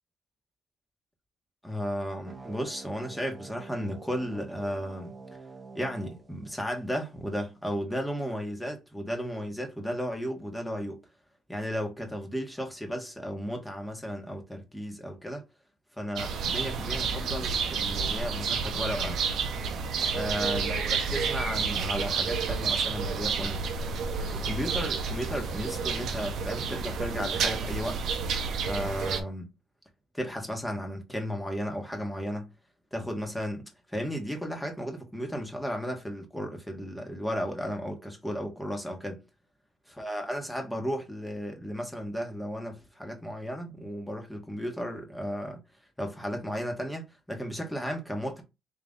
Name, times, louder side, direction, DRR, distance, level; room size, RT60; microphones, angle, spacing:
voice 1, 1.6-5.1 5.7-11.0 11.5-15.4 16.0-19.2 20.1-23.6 24.3-28.0 28.6-29.5 30.1-32.5 32.9-39.2 40.0-45.6 46.0-48.4, equal, 5° left, 1.3 m, -34 dB
sound 1, 2.2-7.2, right 4 dB, 25° right, 0.8 m, -47 dB
sound 2, 16.2-29.2, right 5 dB, 75° right, 0.8 m, -30 dB
3.6 x 3.2 x 3.9 m
cardioid pair, 90°, 0 cm